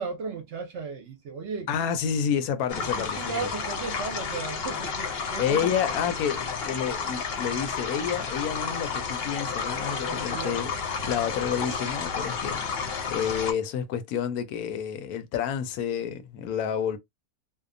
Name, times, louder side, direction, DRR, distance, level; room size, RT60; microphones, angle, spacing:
voice 1, 0.0-1.7 2.8-5.7 10.0-10.6, right 5 dB, 60° right, 0.8 m, -35 dB
voice 2, 1.7-3.5 5.4-10.7 11.0-12.6 13.1-17.0, left 8 dB, 85° left, 1.1 m, -29 dB
sound 1, 2.7-13.5, left 5 dB, 55° left, 0.7 m, -31 dB
2.7 x 2.0 x 2.5 m
omnidirectional pair, 1.5 m